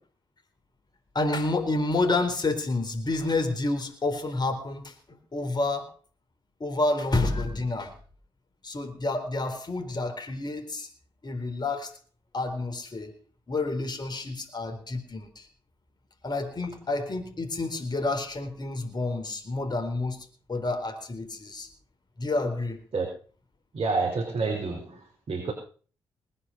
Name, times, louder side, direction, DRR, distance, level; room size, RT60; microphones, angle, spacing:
voice 1, 1.1-5.9 6.6-7.9 8.6-10.9 11.2-11.9 12.3-13.1 13.5-15.5 16.2-21.7 22.2-22.8, left 2 dB, 40° left, 5 dB, 4.1 m, -29 dB
voice 2, 23.7-25.0 25.3-25.5, right 4 dB, 50° right, 0 dB, 5.2 m, -28 dB
20.0 x 10.0 x 5.8 m, 0.42 s
hypercardioid pair, 40°, 11 cm